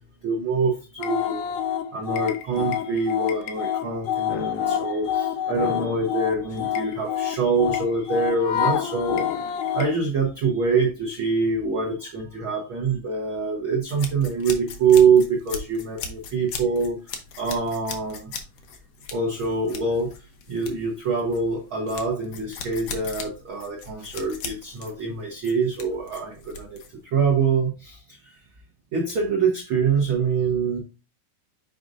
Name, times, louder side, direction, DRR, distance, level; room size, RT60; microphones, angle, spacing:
voice 1, 0.2-1.5 1.9-17.0 17.4-18.3 19.1-20.1 20.5-28.3 28.9-30.8, right 4 dB, 75° right, -1 dB, 1.1 m, -24 dB
sound 1, 1.0-10.0, left 9 dB, 85° left, 2.5 m, -27 dB
sound 2, 13.9-27.0, left 5 dB, 70° left, 1.5 m, -38 dB
7.8 x 5.0 x 2.6 m, 0.31 s
omnidirectional pair, 4.1 m